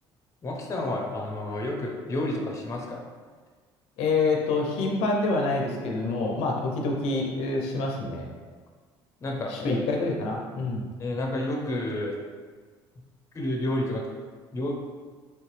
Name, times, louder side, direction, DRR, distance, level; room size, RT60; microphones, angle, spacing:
voice 1, 0.4-3.0 9.2-9.8 11.0-12.2 13.3-14.1 14.5-14.7, left 1 dB, 30° left, 1 dB, 0.7 m, -30 dB
voice 2, 4.0-8.3 9.5-10.9, left 3 dB, 80° left, 0 dB, 0.5 m, -27 dB
3.3 x 2.8 x 3.1 m, 1.5 s
supercardioid pair, 90°, 10 cm